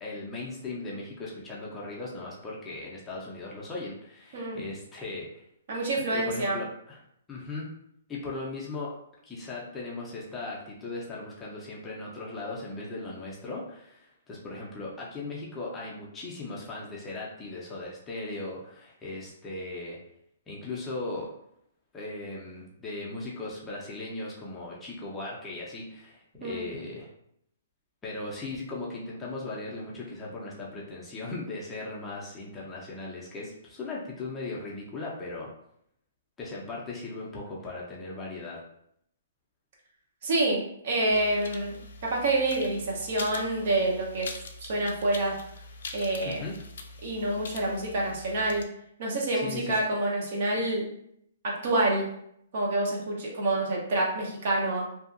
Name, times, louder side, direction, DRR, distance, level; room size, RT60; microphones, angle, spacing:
voice 1, 0.0-5.4 6.1-7.0 7.3-7.8 8.1-8.9 9.3-20.0 20.5-21.3 21.9-27.1 28.0-35.5 36.4-38.6 46.2-46.6 49.3-49.8, left 2 dB, 10° left, -5 dB, 0.5 m, -38 dB
voice 2, 5.7-6.6 26.4-26.7 40.2-44.3 44.6-45.3 45.9-46.4 47.0-48.6 49.0-50.8 51.4-52.1 52.5-54.8, right 2 dB, 55° right, -2 dB, 0.8 m, -27 dB
sound 1, 41.1-48.6, left 3 dB, 70° left, 0.4 m, -43 dB
2.7 x 2.4 x 2.5 m, 0.72 s
hypercardioid pair, 150°, 0 cm